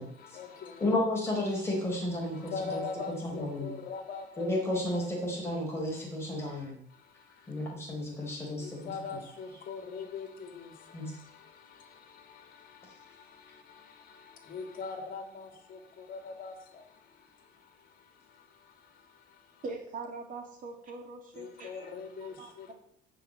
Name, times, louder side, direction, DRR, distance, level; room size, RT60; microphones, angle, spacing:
voice 1, 0.0-1.0 2.2-5.0 6.9-7.7 8.2-8.3 8.6-19.6 21.3-22.7, left 5 dB, 45° left, 5 dB, 2.7 m, -43 dB
voice 2, 0.8-2.8 3.4-3.7 4.4-6.8 7.5-8.8 10.9-11.1, left 1 dB, 10° left, -3 dB, 4.7 m, -32 dB
voice 3, 19.6-21.7 22.2-22.7, right 3 dB, 40° right, 2 dB, 3.4 m, -42 dB
14.5 x 5.7 x 8.0 m, 0.72 s
cardioid pair, 145°, 20 cm